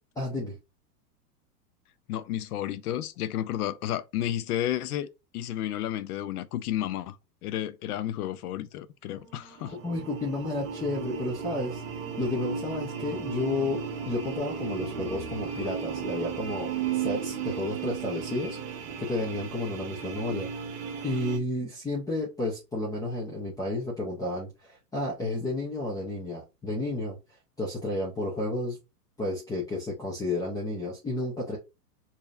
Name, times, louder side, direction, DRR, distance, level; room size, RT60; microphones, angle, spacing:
voice 1, 0.2-0.6 9.8-11.8 12.2-18.6 19.0-27.2 27.6-28.8 29.2-31.6, left 2 dB, 10° left, 0.7 m, -32 dB
voice 2, 2.1-7.2 7.4-9.7, left 12 dB, 65° left, 0.7 m, -32 dB
sound 1, 9.2-21.4, right 7 dB, 50° right, 1.2 m, -35 dB
4.9 x 2.8 x 2.5 m
hypercardioid pair, 135°, 49 cm